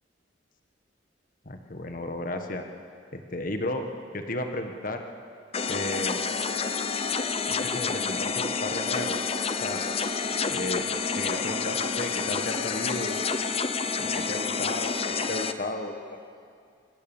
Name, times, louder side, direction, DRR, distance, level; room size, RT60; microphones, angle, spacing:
voice 1, 1.4-2.6 3.1-3.9 4.1-5.0 5.7-6.2 7.5-9.2 9.6-9.8 10.5-10.8 11.2-13.2 14.0-16.2, left 1 dB, 50° left, 5 dB, 1.5 m, -33 dB
sound 1, 5.5-15.5, left 5 dB, 35° left, 0.8 m, -29 dB
26.5 x 16.5 x 7.2 m, 2.3 s
head